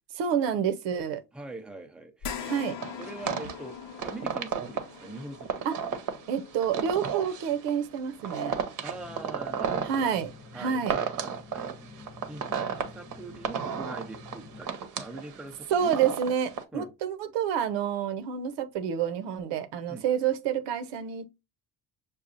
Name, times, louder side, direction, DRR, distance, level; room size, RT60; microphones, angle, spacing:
voice 1, 0.2-1.2 2.4-2.8 5.6-5.7 6.3-8.6 9.8-11.0 15.7-21.3, right 8 dB, 80° right, 0.8 m, -28 dB
voice 2, 1.3-2.5 3.0-3.8 4.0-6.0 8.8-10.2 10.5-11.7 11.9-16.1 16.7-16.9 19.9-20.0, right 2 dB, ahead, 0.6 m, -43 dB
sound 1, 2.2-10.8 11.3-11.4 12.8-12.9, left 7 dB, 70° left, 0.9 m, -44 dB
sound 2, 2.8-16.6, right 7 dB, 50° right, 0.8 m, -34 dB
sound 3, 8.9-14.6, left 4 dB, 35° left, 0.9 m, -49 dB
6.2 x 2.3 x 2.5 m
cardioid pair, 110°, 42 cm